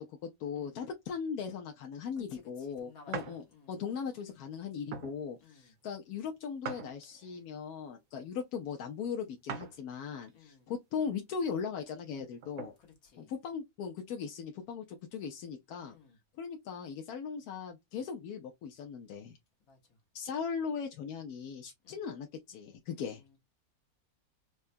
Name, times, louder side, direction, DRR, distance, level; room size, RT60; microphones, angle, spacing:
voice 1, 0.0-12.7 13.2-16.0 16.4-19.4 20.1-23.2, left 6 dB, 85° left, 1.1 m, -39 dB
voice 2, 0.5-0.9 2.2-3.8 5.4-5.8 10.3-10.7 12.8-13.3 15.8-16.2 19.6-20.0 21.8-22.0 22.9-23.4, left 4 dB, 70° left, 1.7 m, -59 dB
sound 1, 3.1-3.4 4.0-4.2 4.9-5.2 6.6-7.4 9.5-9.8 10.3-10.4 12.0-12.7, right 5 dB, 70° right, 1.2 m, -41 dB
4.7 x 2.2 x 2.5 m
omnidirectional pair, 1.6 m